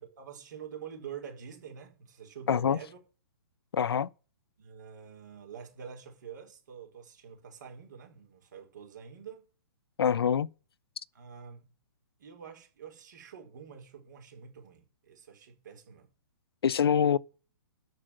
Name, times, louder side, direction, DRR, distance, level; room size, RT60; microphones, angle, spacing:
voice 1, 0.0-3.0 4.6-9.5 11.1-11.7 12.2-16.1, right 7 dB, 50° right, 4.3 m, -46 dB
voice 2, 2.5-2.8 3.7-4.1 10.0-10.5 16.6-17.2, left 8 dB, 80° left, 0.6 m, -25 dB
13.0 x 4.9 x 7.6 m
hypercardioid pair, 175°, 13 cm